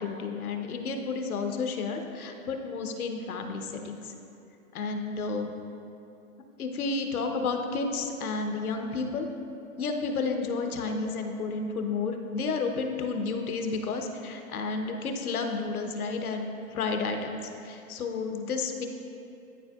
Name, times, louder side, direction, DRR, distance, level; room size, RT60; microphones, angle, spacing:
voice 1, 0.0-4.1 4.7-5.6 6.6-9.3 9.8-18.9, left 4 dB, 75° left, 4 dB, 0.9 m, -31 dB
12.0 x 4.3 x 2.4 m, 2.7 s
hypercardioid pair, 160°, 44 cm